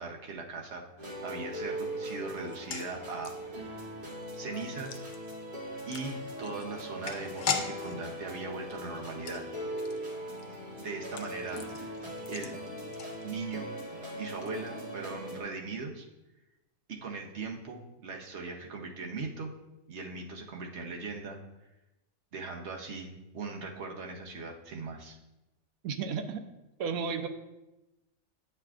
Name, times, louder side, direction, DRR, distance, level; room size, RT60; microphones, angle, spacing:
voice 1, 0.0-3.8 4.4-5.1 5.9-9.4 10.8-12.0 12.3-12.6 13.2-13.7 14.2-16.1 16.9-19.5 19.9-21.4 22.3-25.2, right 4 dB, 55° right, 1 dB, 1.1 m, -39 dB
sound 1, 1.0-15.4, equal, 40° right, 1.3 m, -40 dB
sound 2, 2.4-13.7 13.9-14.0 14.3-14.5, left 6 dB, 70° left, 0.4 m, -41 dB
voice 2, 25.8-26.4 26.8-27.3, right 6 dB, 85° right, 8 dB, 1.0 m, -32 dB
8.9 x 5.7 x 2.4 m, 0.99 s
omnidirectional pair, 1.5 m